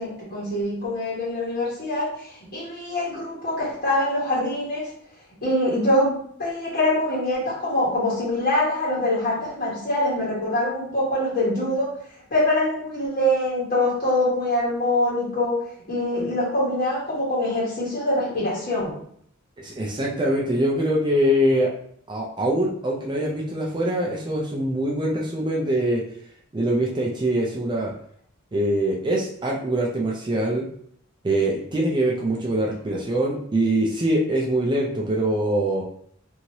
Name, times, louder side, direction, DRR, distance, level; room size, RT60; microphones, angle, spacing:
voice 1, 0.0-4.9 5.4-6.1 6.4-11.9 12.3-15.5 15.9-18.9, left 1 dB, 45° left, -8 dB, 1.2 m, -24 dB
voice 2, 19.6-21.7 22.1-26.0 26.5-27.9 28.5-30.7 31.2-35.8, right 1 dB, 20° right, -3 dB, 0.4 m, -23 dB
3.0 x 2.6 x 2.8 m, 0.65 s
head